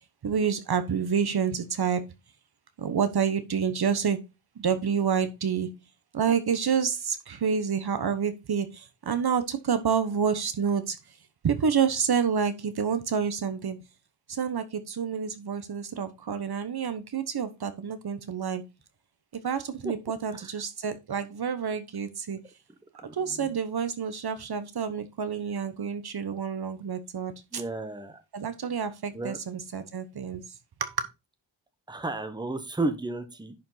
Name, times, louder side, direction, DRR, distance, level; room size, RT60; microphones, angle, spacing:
voice 1, 0.2-2.0 2.8-4.2 4.6-5.7 6.1-11.0 11.4-13.8 14.3-18.6 19.4-22.4 23.1-27.6 28.3-30.4 30.8-30.9, right 7 dB, 55° right, 11 dB, 1.1 m, -28 dB
voice 2, 23.0-23.5 27.5-28.2 29.1-29.4 31.9-33.5, right 2 dB, 10° right, 9 dB, 1.1 m, -33 dB
10.5 x 5.1 x 4.0 m, 0.25 s
wide cardioid pair, 150°, 45 cm